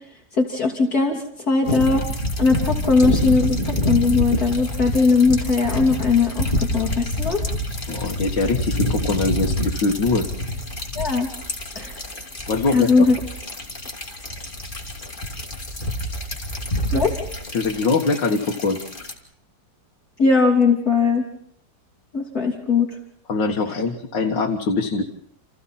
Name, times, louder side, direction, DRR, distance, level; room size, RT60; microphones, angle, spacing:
voice 1, 0.3-2.0 2.4-7.4 11.0-11.3 11.8-11.9 12.7-13.2 16.9-17.2 20.2-21.2 22.1-22.9, left 4 dB, 55° left, 1 dB, 3.5 m, -19 dB
Water trickle, 1.6-19.1, left 1 dB, 25° left, 2.9 m, -27 dB
voice 2, 7.9-10.3 12.5-13.1 17.5-18.8 23.3-25.0, left 3 dB, 80° left, 1 dB, 2.4 m, -22 dB
30.0 x 28.5 x 4.3 m, 0.66 s
omnidirectional pair, 2.0 m